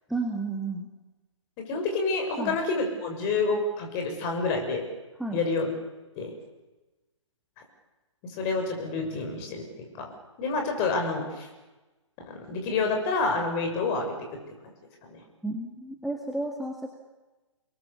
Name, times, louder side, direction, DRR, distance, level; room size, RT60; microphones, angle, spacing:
voice 1, 0.1-0.9 2.4-2.6 5.2-5.4 15.4-16.9, right 2 dB, ahead, 1 dB, 1.9 m, -32 dB
voice 2, 1.7-4.8 5.3-5.7 6.2-6.3 8.4-9.6 10.0-10.1 10.4-11.5 12.3-14.1 15.1-15.2, left 3 dB, 30° left, 3 dB, 7.1 m, -28 dB
28.5 x 22.5 x 7.2 m, 1.1 s
figure-of-eight pair, 125°, 16 cm